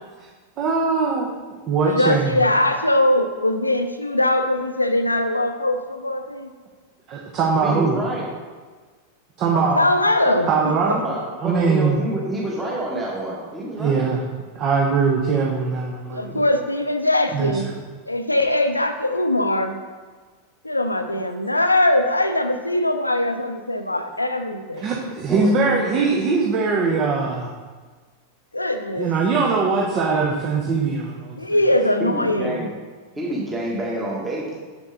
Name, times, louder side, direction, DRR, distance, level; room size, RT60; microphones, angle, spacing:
voice 1, 0.6-2.4 7.1-8.0 9.4-9.8 10.5-11.0 11.4-12.0 13.8-14.2 14.5-16.5 17.3-17.5 24.8-27.5 29.0-31.6, right 4 dB, 35° right, -1 dB, 0.9 m, -21 dB
voice 2, 1.8-6.5 9.8-11.0 16.1-17.7 18.1-19.8 20.6-24.9 28.5-29.1 31.4-32.6, left 1 dB, 85° left, 7 dB, 0.6 m, -21 dB
voice 3, 7.6-8.3 10.3-10.4 10.9-14.1 25.3-26.1 32.0-32.7 33.1-34.6, right 1 dB, 15° right, -4 dB, 1.6 m, -28 dB
7.1 x 6.7 x 3.9 m, 1.4 s
figure-of-eight pair, 90°, 0 cm